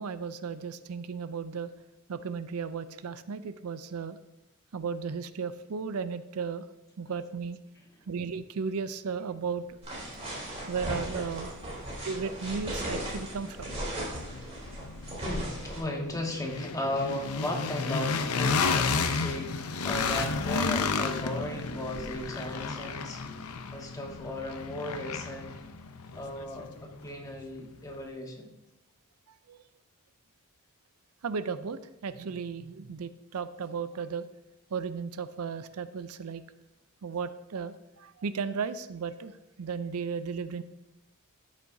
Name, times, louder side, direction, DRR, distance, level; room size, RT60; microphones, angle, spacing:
voice 1, 0.0-1.7 2.1-4.2 4.7-6.7 7.0-7.6 8.1-9.8 10.7-11.5 12.0-13.8 29.5-29.6 31.2-34.2 34.7-36.4 37.0-39.3 39.6-40.6, right 5 dB, 80° right, 13 dB, 0.5 m, -35 dB
sound 1, 9.8-15.8, right 1 dB, 30° right, 3.4 m, -37 dB
sound 2, 11.5-27.5, left 4 dB, 80° left, 0.7 m, -33 dB
voice 2, 15.2-23.2 23.7-25.6 26.1-28.5, left 1 dB, 15° left, 1 dB, 1.3 m, -36 dB
13.0 x 7.4 x 2.7 m, 0.92 s
head